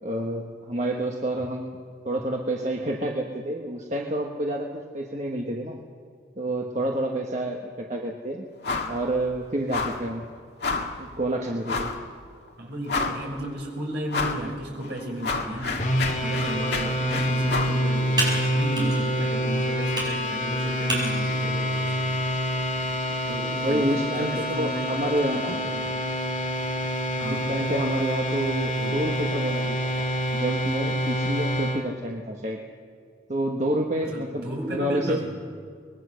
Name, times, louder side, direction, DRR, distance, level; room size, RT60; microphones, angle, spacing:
voice 1, 0.0-1.8 2.0-4.7 4.9-5.8 6.4-8.4 8.9-10.2 11.0-11.9 23.5-25.6 27.2-30.0 30.3-32.6 33.3-35.2, right 1 dB, 35° right, 0 dB, 1.4 m, -28 dB
sound 1, 8.6-9.0 9.2-9.4 9.7-10.1 10.6-11.0 11.6-12.0 12.5-12.6 12.9-13.4 14.1-14.4 14.8-17.8, left 4 dB, 60° left, 1.9 m, -29 dB
voice 2, 12.6-22.1 23.3-24.9 25.2-25.9 27.2-27.5 28.7-29.0 34.1-35.3, right 1 dB, 60° right, 0 dB, 5.8 m, -34 dB
sound 2, 15.8-31.8, equal, 40° left, 2.7 m, -27 dB
Computer keyboard, 16.7-23.5, right 1 dB, 20° right, 5.7 m, -35 dB
24.0 x 21.0 x 6.5 m, 2.1 s
head